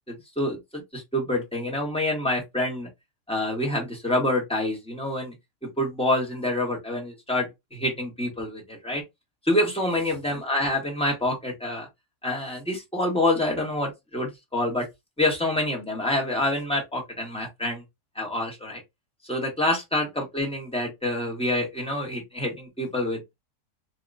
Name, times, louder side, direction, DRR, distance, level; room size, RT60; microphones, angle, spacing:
voice 1, 0.1-2.9 3.3-5.3 5.6-9.0 9.5-11.9 12.2-14.9 15.2-17.8 18.1-18.8 19.3-23.3, left 1 dB, 5° left, 0.9 m, -27 dB
2.9 x 2.8 x 2.4 m
omnidirectional pair, 1.7 m